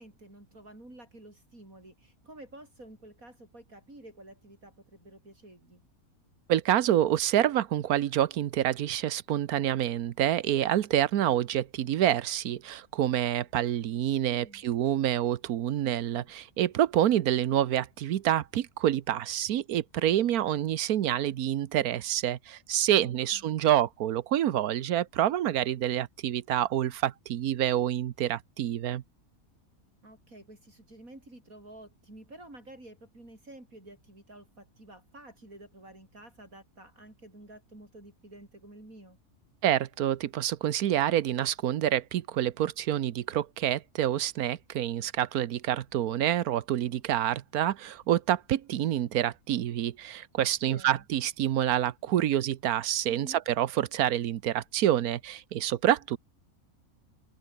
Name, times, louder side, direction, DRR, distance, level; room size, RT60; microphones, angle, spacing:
voice 1, 0.0-5.8 14.2-14.6 23.0-23.6 30.0-39.2 50.6-51.1 53.0-53.4, right 1 dB, 70° right, 8.6 m, -50 dB
voice 2, 6.5-29.0 39.6-56.2, right 11 dB, 85° right, 1.3 m, -27 dB
omnidirectional pair, 1.5 m